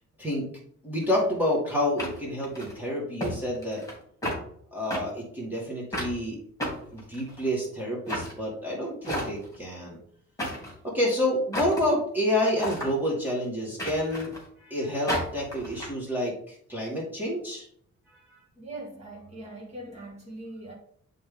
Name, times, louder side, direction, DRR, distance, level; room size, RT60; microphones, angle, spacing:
voice 1, 0.8-3.8 4.7-6.4 6.9-10.0 10.8-14.3 14.6-17.7 18.1-18.4, left 1 dB, 5° right, 2.0 m, -28 dB
sound 1, 1.0-1.2 2.0-2.8 3.2-3.3 3.6-4.4 4.9-5.0 5.9-6.1 6.6-7.5 8.1-8.3 9.0-9.6 10.4-10.8 11.5-11.9 12.6-12.9 13.8-14.5 15.1-15.9, equal, 10° left, 3.3 m, -32 dB
voice 2, 18.6-20.7, right 2 dB, 25° right, 2.1 m, -41 dB
10.5 x 3.6 x 3.9 m
wide cardioid pair, 140°, 29 cm